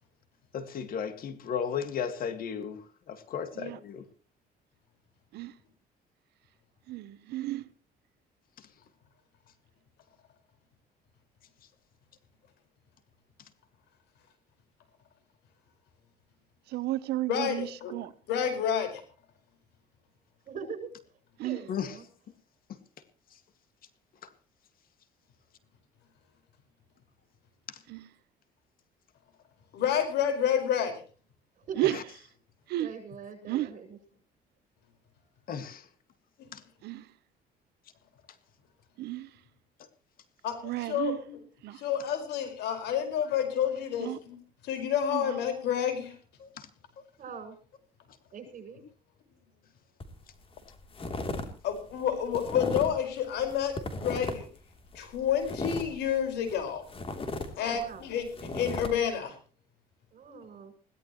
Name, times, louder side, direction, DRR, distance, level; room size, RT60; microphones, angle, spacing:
voice 1, 0.5-2.8 3.1-4.0 21.7-21.9 35.5-35.8 36.5-36.6 46.4-46.5, left 7 dB, 60° left, 2.0 m, -34 dB
voice 2, 6.9-7.7 16.7-18.1 21.4-21.6 27.9-28.1 31.8-32.0 32.7-32.9 33.5-33.7 36.8-37.1 39.0-39.3 40.6-41.2 41.6-41.8 44.0-44.2 45.1-45.4, right 16 dB, 75° right, 0.8 m, -32 dB
voice 3, 17.3-17.9 18.3-19.0 29.7-31.0 33.4-33.5 40.4-41.4 41.8-44.4 44.6-46.1 51.6-54.5 54.9-56.8 57.6-58.2 58.5-59.3, left 8 dB, 80° left, 4.9 m, -29 dB
voice 4, 20.5-20.9 21.4-22.1 31.6-31.9 32.8-34.0 47.2-47.6 48.3-48.8 57.6-58.0 60.1-60.7, right 5 dB, 50° right, 7.6 m, -42 dB
sound 1, 50.0-50.2 50.6-51.5 51.7-53.0 53.4-54.6 54.9-56.6 56.9-58.9, left 2 dB, 35° left, 3.1 m, -35 dB
21.5 x 17.0 x 3.1 m
cardioid pair, 110°, 17 cm